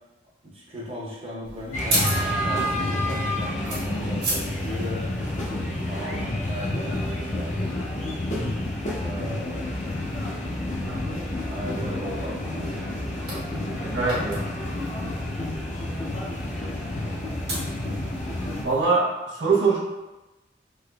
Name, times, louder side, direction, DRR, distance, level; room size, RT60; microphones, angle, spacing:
voice 1, 0.4-5.1 5.8-7.8 9.0-9.8 11.5-12.7, equal, 30° right, -7 dB, 0.7 m, -37 dB
sound 1, 1.4-18.8, right 1 dB, 60° right, 1.2 m, -37 dB
sound 2, 1.7-18.6, left 1 dB, 40° left, 0.5 m, -29 dB
voice 2, 13.7-14.4 18.6-19.8, right 4 dB, 85° right, -4 dB, 0.7 m, -23 dB
3.3 x 2.9 x 2.3 m, 1.1 s
head